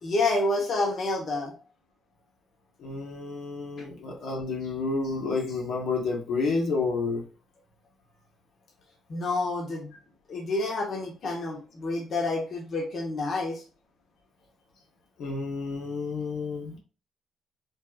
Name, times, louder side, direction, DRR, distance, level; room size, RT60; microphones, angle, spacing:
voice 1, 0.0-1.5 9.1-9.9 10.3-13.6, left 2 dB, 55° left, 1.2 m, -28 dB
voice 2, 2.8-7.2 15.2-16.8, left 4 dB, 75° left, 1.3 m, -30 dB
5.3 x 2.6 x 2.4 m
cardioid pair, 90°, 0 cm